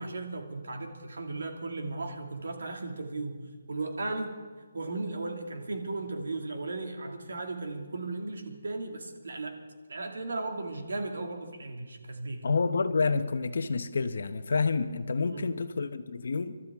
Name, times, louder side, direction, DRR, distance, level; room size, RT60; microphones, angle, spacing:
voice 1, 0.0-4.3 4.7-9.6 9.9-12.5 15.2-15.5, right 2 dB, 80° right, 4 dB, 2.2 m, -36 dB
voice 2, 12.4-16.6, left 4 dB, 65° left, 11 dB, 0.9 m, -28 dB
27.0 x 12.5 x 3.6 m, 1.5 s
hypercardioid pair, 175°, 0 cm